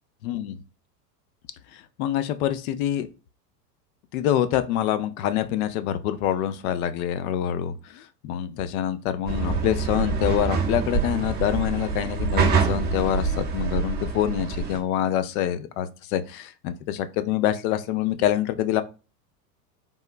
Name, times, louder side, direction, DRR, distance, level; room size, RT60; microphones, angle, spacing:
voice 1, 0.2-0.5 1.7-3.1 4.1-18.8, left 11 dB, 60° left, 0.6 m, -26 dB
sound 1, 9.3-14.8, right 5 dB, 20° right, 0.6 m, -25 dB
3.5 x 2.1 x 2.4 m
hypercardioid pair, 100°, 49 cm